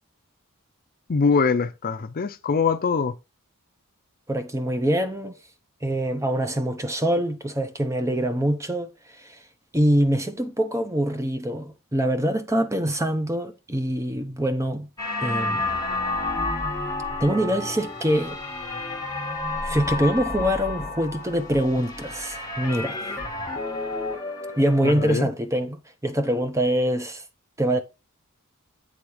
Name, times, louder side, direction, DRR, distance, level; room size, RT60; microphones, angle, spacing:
voice 1, 1.1-3.1 24.8-25.3, left 5 dB, 40° left, 0.5 m, -23 dB
voice 2, 4.3-5.4 5.8-8.9 9.2-9.4 9.7-14.9 15.2-15.7 17.2-18.4 19.6-23.0 24.6-27.2 27.6-27.8, right 1 dB, 15° right, 0.8 m, -24 dB
sound 1, 15.0-25.1, left 2 dB, 15° left, 1.7 m, -30 dB
8.5 x 3.4 x 4.9 m
head